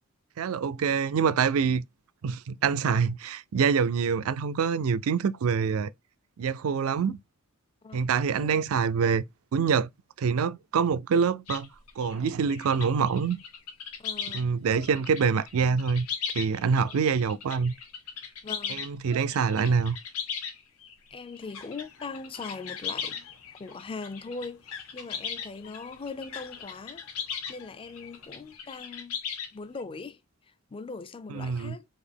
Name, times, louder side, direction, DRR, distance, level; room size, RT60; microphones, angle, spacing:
voice 1, 0.4-1.8 2.2-5.9 6.4-7.2 7.9-9.2 9.5-9.9 10.2-11.7 12.0-13.4 14.3-16.1 16.3-17.7 18.7-20.0 31.3-31.8, right 6 dB, 70° right, 0.4 m, -25 dB
sound 1, 11.5-14.4 14.7-27.5 27.8-29.8, left 7 dB, 90° left, 1.0 m, -38 dB
voice 2, 14.0-14.5 16.7-17.0 18.4-18.8 21.1-23.3 23.6-27.0 27.5-29.2 29.5-30.2 30.5-31.9, left 4 dB, 25° left, 0.4 m, -40 dB
sound 2, 21.4-28.6, left 7 dB, 65° left, 0.8 m, -49 dB
4.2 x 2.6 x 3.4 m
head